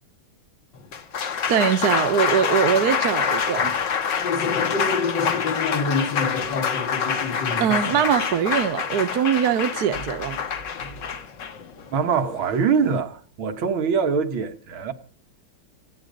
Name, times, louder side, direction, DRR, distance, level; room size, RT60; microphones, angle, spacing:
Applause, 0.7-13.0, left 6 dB, 65° left, 2.1 m, -25 dB
voice 1, 1.5-3.7 7.6-10.4, right 8 dB, 55° right, 1.4 m, -22 dB
voice 2, 11.9-14.9, right 6 dB, 85° right, 2.3 m, -23 dB
26.0 x 9.1 x 5.3 m
omnidirectional pair, 2.2 m